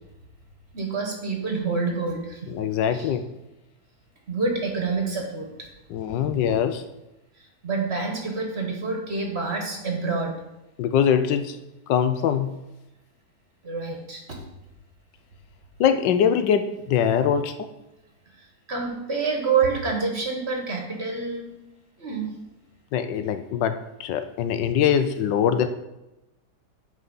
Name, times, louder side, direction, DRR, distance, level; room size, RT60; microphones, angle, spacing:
voice 1, 0.7-2.5 2.9-3.1 4.3-5.5 7.6-10.3 13.6-14.4 18.7-21.5 22.0-22.3, right 4 dB, 35° right, 1 dB, 1.3 m, -27 dB
voice 2, 2.5-3.3 5.9-6.8 10.8-11.6 11.9-12.5 15.8-17.7 22.9-25.7, left 8 dB, 75° left, 10 dB, 1.2 m, -23 dB
9.3 x 4.2 x 5.5 m, 0.95 s
omnidirectional pair, 2.1 m